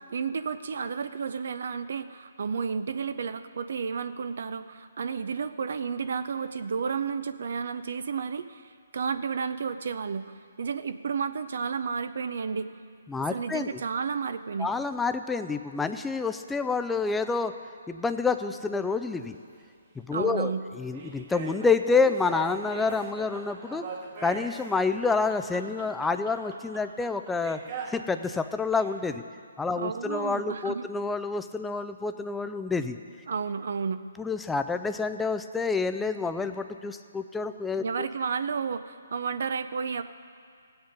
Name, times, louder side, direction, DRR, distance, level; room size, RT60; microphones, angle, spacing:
voice 1, 0.1-12.7 13.3-14.7 20.1-20.7 29.7-30.9 33.3-34.0 37.8-40.0, right 6 dB, 65° right, 11 dB, 0.5 m, -32 dB
voice 2, 13.1-13.8 14.6-17.5 17.9-19.4 20.0-23.9 24.2-27.6 27.9-29.2 29.6-33.0 34.2-38.1, left 4 dB, 5° left, 9 dB, 0.4 m, -28 dB
sound 1, 19.3-19.4 20.1-28.1 28.5-28.9, right 5 dB, 40° right, 1.4 m, -41 dB
16.5 x 8.0 x 5.2 m, 2.2 s
hypercardioid pair, 150°, 0 cm